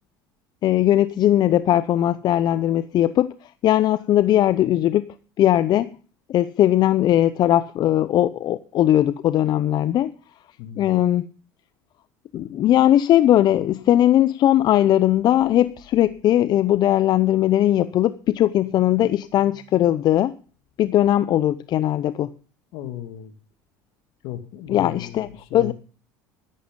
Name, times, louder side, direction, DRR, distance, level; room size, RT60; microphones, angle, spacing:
voice 1, 0.6-3.3 3.6-5.0 5.4-5.9 6.3-10.1 10.8-11.3 12.3-20.3 20.8-22.3 24.7-25.7, left 12 dB, 50° left, 0.7 m, -19 dB
voice 2, 10.6-11.0 22.7-23.3 24.2-25.7, left 12 dB, 70° left, 2.2 m, -36 dB
12.5 x 11.0 x 5.3 m
supercardioid pair, 100°, 9 cm